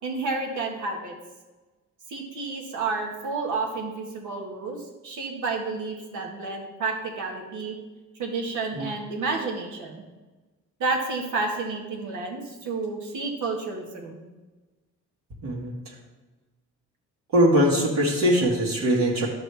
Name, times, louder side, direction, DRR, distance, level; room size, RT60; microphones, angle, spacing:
voice 1, 0.0-1.1 2.1-7.8 8.2-10.0 10.8-14.2, right 3 dB, 80° right, 1 dB, 1.7 m, -30 dB
voice 2, 15.4-15.9 17.3-19.3, equal, 65° right, -5 dB, 2.0 m, -22 dB
10.5 x 6.2 x 3.5 m, 1.2 s
cardioid pair, 90°, 30 cm